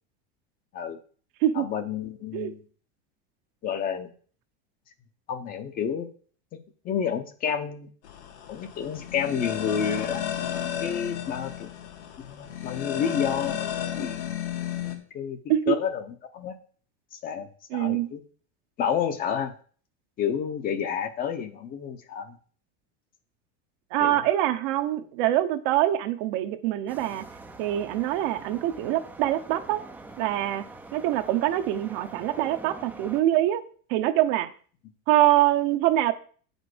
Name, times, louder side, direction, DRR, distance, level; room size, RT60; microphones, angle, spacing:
voice 1, 1.5-2.6 3.6-4.1 5.3-6.1 6.8-7.9 8.5-10.2 10.8-11.7 12.2-13.7 14.0-14.3 15.1-15.4 15.7-16.5 17.1-18.2 18.8-19.5 20.2-22.4 24.0-24.2, left 8 dB, 25° left, 8 dB, 0.8 m, -30 dB
sound 1, 8.0-15.0, left 10 dB, 80° left, 2.2 m, -33 dB
voice 2, 17.7-18.1 23.9-27.2 27.6-29.8 30.2-30.6 30.9-33.6 33.9-34.5 35.1-36.1, right 13 dB, 55° right, 9 dB, 0.9 m, -24 dB
sound 2, 26.9-33.2, right 2 dB, 5° right, 0.5 m, -44 dB
8.9 x 5.4 x 6.1 m, 0.44 s
supercardioid pair, 165°, 32 cm